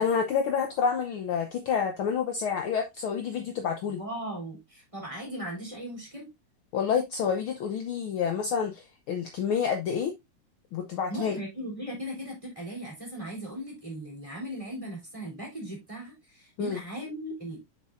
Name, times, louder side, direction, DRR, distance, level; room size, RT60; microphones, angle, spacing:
voice 1, 0.0-4.0 6.7-10.1 10.7-11.4 16.6-16.8, left 6 dB, 75° left, 1.2 m, -28 dB
voice 2, 4.0-6.3 11.1-17.6, right 1 dB, 10° right, 3.4 m, -38 dB
7.2 x 6.2 x 2.5 m
omnidirectional pair, 3.4 m